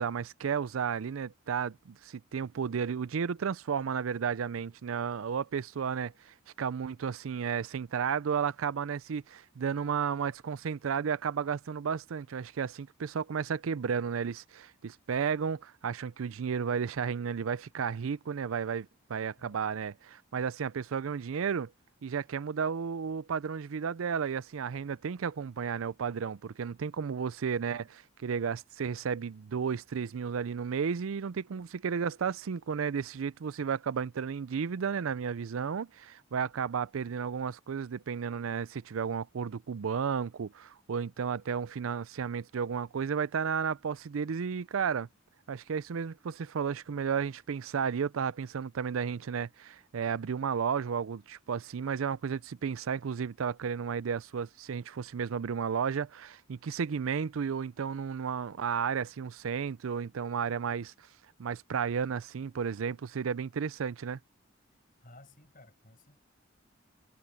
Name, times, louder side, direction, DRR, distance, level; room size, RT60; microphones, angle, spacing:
voice 1, 0.0-21.7 22.0-45.1 45.5-61.1 61.4-64.2, right 6 dB, 80° right, 0.4 m, -33 dB
voice 2, 19.4-19.7 27.2-27.4 65.0-66.2, left 1 dB, 40° left, 6.0 m, -57 dB
head